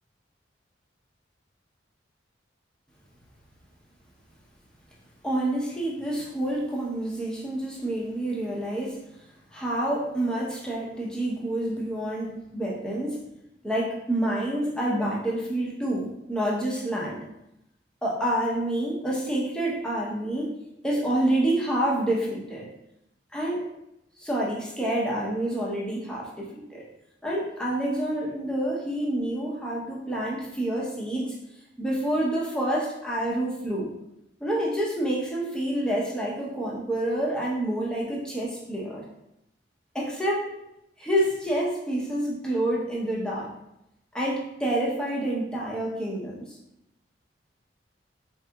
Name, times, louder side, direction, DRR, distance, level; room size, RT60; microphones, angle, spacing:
voice 1, 5.2-9.0 9.5-13.2 13.6-17.2 18.0-20.5 20.8-22.7 23.3-23.7 24.2-26.9 27.2-31.4 31.8-33.9 34.4-39.0 39.9-40.5 41.0-43.5 44.1-46.6, right 1 dB, 5° left, -5 dB, 0.7 m, -28 dB
4.6 x 2.9 x 2.2 m, 0.84 s
head